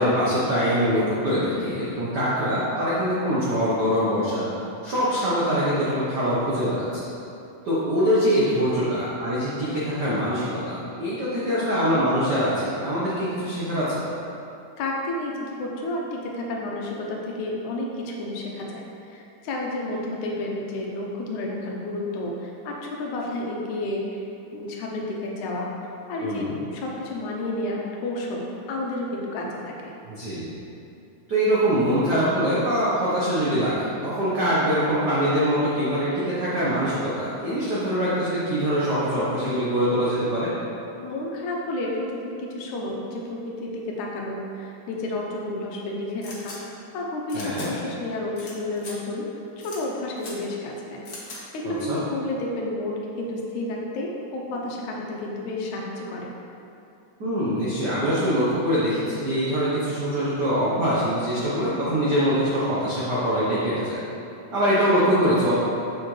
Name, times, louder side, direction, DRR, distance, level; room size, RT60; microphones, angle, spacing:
voice 1, 0.0-4.4 4.8-7.0 7.6-14.1 26.2-26.5 30.1-30.5 31.3-40.5 47.3-47.7 51.6-52.0 57.2-64.0 64.5-65.5, equal, 80° right, -9 dB, 0.9 m, -23 dB
voice 2, 14.8-24.2 24.5-25.8 26.1-29.9 41.0-46.6 46.9-49.2 49.6-51.1 51.5-56.3, left 2 dB, 75° left, -1 dB, 2.2 m, -31 dB
sound 1, 46.2-46.6 47.3-47.7 48.4-48.5 48.8-48.9 49.6-49.8 50.2-50.3 51.1-51.4, left 3 dB, 55° left, 1.1 m, -40 dB
7.4 x 6.6 x 3.2 m, 2.7 s
omnidirectional pair, 3.6 m